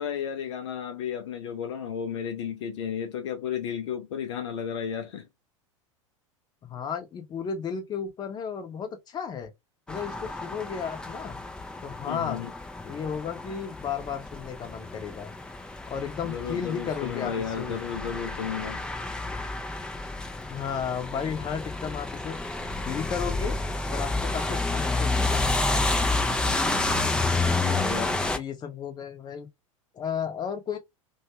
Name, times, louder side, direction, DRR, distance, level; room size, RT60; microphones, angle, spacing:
voice 1, 0.0-5.3 12.1-12.5 16.2-18.8 27.6-28.2, left 8 dB, 60° left, 0.5 m, -33 dB
voice 2, 6.6-9.5 9.9-11.4 11.8-12.4 12.8-15.3 15.9-17.8 20.5-22.6 22.8-23.6 23.9-25.4 27.0-27.7 28.3-29.5 29.9-30.8, left 7 dB, 25° left, 0.7 m, -34 dB
sound 1, 9.9-28.4, left 2 dB, 5° left, 0.4 m, -30 dB
2.7 x 2.3 x 2.8 m
figure-of-eight pair, 85°, 17 cm